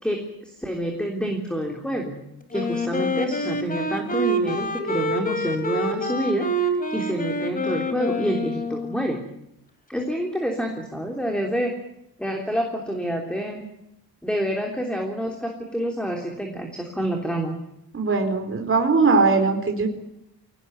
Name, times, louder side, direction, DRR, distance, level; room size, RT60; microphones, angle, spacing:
voice 1, 0.0-2.1 2.5-9.2 9.9-11.8 12.2-13.6 14.2-17.6, equal, ahead, 2 dB, 3.4 m, -28 dB
Wind instrument woodwind instrument, 2.5-9.2, equal, 20° left, 3.1 m, -27 dB
voice 2, 17.9-19.9, right 4 dB, 35° right, 3 dB, 4.1 m, -20 dB
23.5 x 18.5 x 9.7 m, 0.81 s
wide cardioid pair, 135°, 39 cm